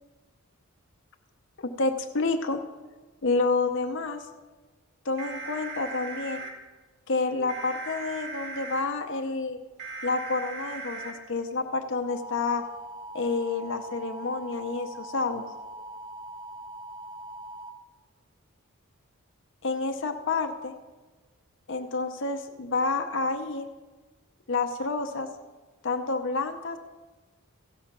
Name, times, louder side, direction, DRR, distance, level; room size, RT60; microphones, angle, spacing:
voice 1, 1.6-2.6 3.2-4.3 5.0-6.4 7.1-9.6 10.0-12.6 13.1-15.4 19.6-20.7 21.7-23.7 24.5-25.3 25.8-26.8, left 3 dB, 55° left, 5 dB, 0.8 m, -29 dB
sound 1, 5.2-6.5 7.5-8.8 9.8-11.1 12.1-17.7, right 3 dB, 55° right, 1.9 m, -40 dB
16.0 x 5.8 x 5.9 m, 1.3 s
head